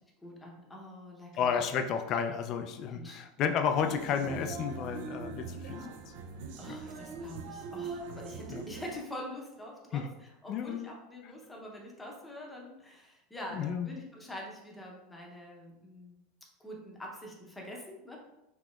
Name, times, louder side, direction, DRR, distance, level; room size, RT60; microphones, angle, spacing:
voice 1, 0.2-1.5 2.9-3.2 5.7-5.9 6.6-16.2 16.6-18.2, left 1 dB, 10° left, -1 dB, 0.7 m, -45 dB
voice 2, 1.4-5.8 6.7-6.8 8.5-8.7 9.9-10.1 10.5-10.9 13.5-13.9, left 7 dB, 40° left, 7 dB, 0.3 m, -32 dB
sound 1, 3.8-9.0, right 4 dB, 70° right, 0.4 m, -42 dB
4.0 x 2.8 x 2.4 m, 0.89 s
supercardioid pair, 140°, 0 cm